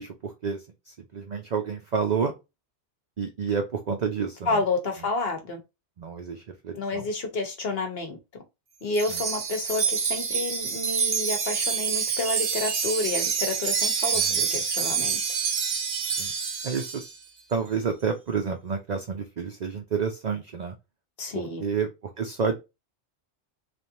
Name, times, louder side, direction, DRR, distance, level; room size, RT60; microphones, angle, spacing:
voice 1, 0.0-2.3 3.2-4.6 6.0-7.0 9.1-9.2 14.3-14.5 16.2-16.3 16.6-17.0 17.5-20.7 21.3-21.9 22.2-22.5, right 6 dB, 50° right, 0.6 m, -29 dB
voice 2, 4.5-5.6 6.7-8.2 8.8-15.2 21.2-21.6, left 3 dB, 60° left, 1.2 m, -30 dB
Wind chime, 8.9-17.1, right 6 dB, 65° right, 0.9 m, -27 dB
3.2 x 2.5 x 2.7 m
omnidirectional pair, 1.2 m